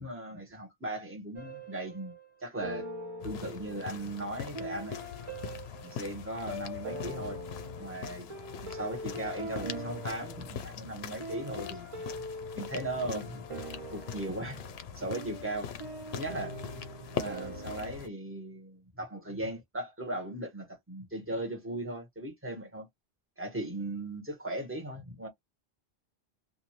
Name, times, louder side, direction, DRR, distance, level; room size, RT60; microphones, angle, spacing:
voice 1, 0.0-2.1 2.4-2.9 3.2-5.0 5.8-7.4 7.8-8.3 8.6-12.0 12.6-13.4 13.9-14.6 14.9-15.7 16.1-16.8 17.1-22.9 23.4-25.3, right 1 dB, 15° right, 1.2 m, -38 dB
sound 1, 1.4-2.3 2.6-18.0, right 1 dB, 35° right, 0.8 m, -43 dB
sound 2, 3.2-18.1, left 8 dB, 80° left, 0.8 m, -42 dB
2.5 x 2.5 x 3.0 m
omnidirectional pair, 1.1 m